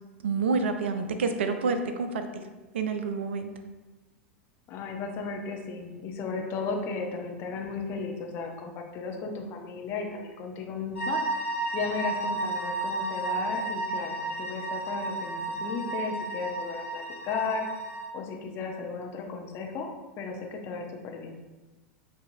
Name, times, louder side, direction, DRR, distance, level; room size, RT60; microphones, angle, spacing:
voice 1, 0.2-2.4 2.7-3.5, right 4 dB, 60° right, 8 dB, 0.4 m, -28 dB
voice 2, 4.7-11.2 11.7-17.7 18.1-19.9 20.2-21.4, left 4 dB, 35° left, 2 dB, 0.7 m, -35 dB
sound 1, 10.9-18.1, right 2 dB, 70° left, 0.7 m, -32 dB
7.2 x 2.7 x 2.6 m, 1.2 s
figure-of-eight pair, 90°, 7 cm